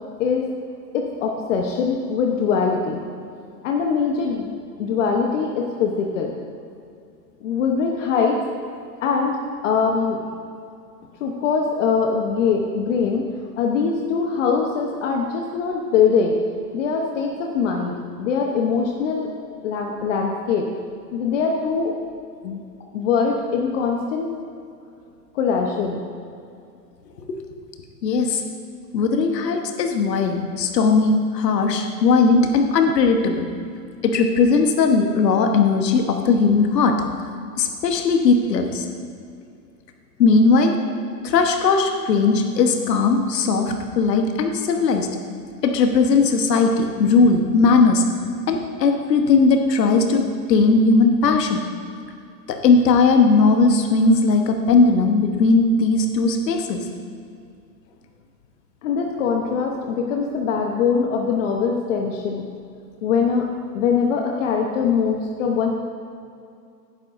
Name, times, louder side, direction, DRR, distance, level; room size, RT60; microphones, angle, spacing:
voice 1, 0.9-3.0 3.6-4.5 4.8-6.3 7.4-8.4 9.0-9.4 9.6-10.2 11.2-13.3 13.6-16.4 16.7-19.3 19.6-20.7 21.1-21.9 22.4-22.6 22.9-24.3 25.3-26.0 29.0-29.1 58.8-62.5 63.0-63.5 63.7-65.7, left 5 dB, 50° left, 1 dB, 1.0 m, -22 dB
voice 2, 28.0-28.4 28.9-33.5 34.0-37.0 37.6-38.9 40.2-40.8 41.2-45.1 45.6-48.0 48.5-51.6 52.5-56.8, left 4 dB, 75° left, 5 dB, 1.3 m, -18 dB
11.0 x 9.9 x 2.6 m, 2.4 s
hypercardioid pair, 140°, 49 cm